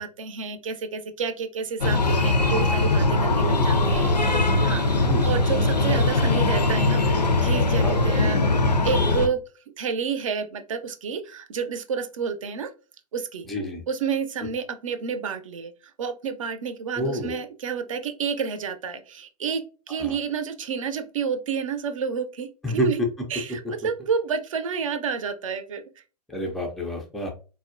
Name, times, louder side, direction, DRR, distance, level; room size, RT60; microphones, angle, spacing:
voice 1, 0.0-4.1 4.6-8.4 8.8-9.4 9.8-12.7 13.1-13.5 13.9-23.0 23.3-26.0, right 6 dB, 55° right, 9 dB, 0.6 m, -30 dB
Breathing, 1.8-9.3, left 2 dB, 85° left, 0.5 m, -21 dB
voice 2, 3.3-4.2 5.0-5.3 7.8-8.0 13.5-13.8 17.0-17.4 20.0-20.1 22.6-22.9 26.3-27.3, equal, ahead, 0 dB, 0.4 m, -29 dB
4.0 x 2.1 x 2.4 m, 0.34 s
figure-of-eight pair, 110°, 21 cm